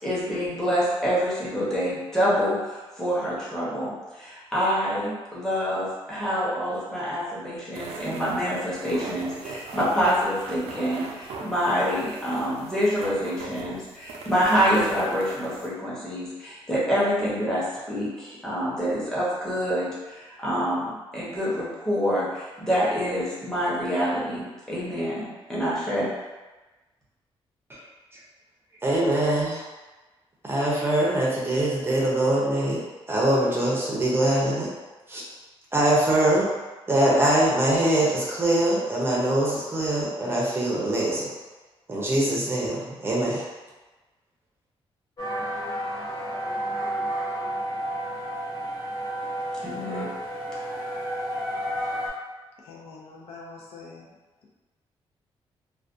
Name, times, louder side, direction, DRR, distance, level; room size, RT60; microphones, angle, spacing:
voice 1, 0.0-26.1 49.6-50.1, equal, 5° left, -8 dB, 0.8 m, -26 dB
sound 1, 7.7-15.7, right 3 dB, 80° right, 0.4 m, -39 dB
voice 2, 28.8-29.6 30.4-32.8 33.1-34.7 35.1-35.2 35.7-36.5 36.9-41.3 41.9-43.5, right 1 dB, 25° right, -5 dB, 0.5 m, -23 dB
sound 2, 45.2-52.1, right 1 dB, 40° left, 0.7 m, -31 dB
voice 3, 52.6-54.1, left 3 dB, 75° left, -3 dB, 0.5 m, -44 dB
2.4 x 2.2 x 2.5 m, 1.2 s
cardioid pair, 135°, 10 cm